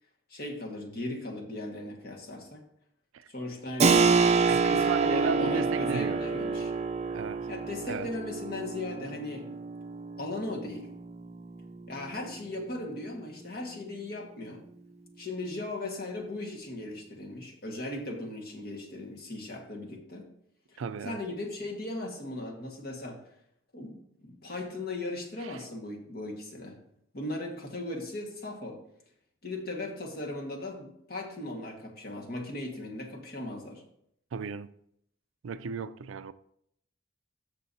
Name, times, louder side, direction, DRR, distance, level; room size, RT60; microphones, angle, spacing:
voice 1, 0.3-2.6 3.3-4.1 4.7-6.7 7.5-9.4 10.2-10.9 11.9-14.7 15.2-20.3 20.7-23.2 23.7-26.8 27.1-28.8 29.4-33.8, left 2 dB, 50° left, 1.7 m, -38 dB
Keyboard (musical), 3.8-14.2, right 4 dB, 35° right, 0.5 m, -29 dB
voice 2, 4.5-6.2 7.1-7.5 7.9-8.1 20.8-21.2 25.4-25.6 34.3-34.7 35.4-36.3, right 5 dB, 85° right, 0.4 m, -35 dB
13.5 x 6.7 x 2.8 m
head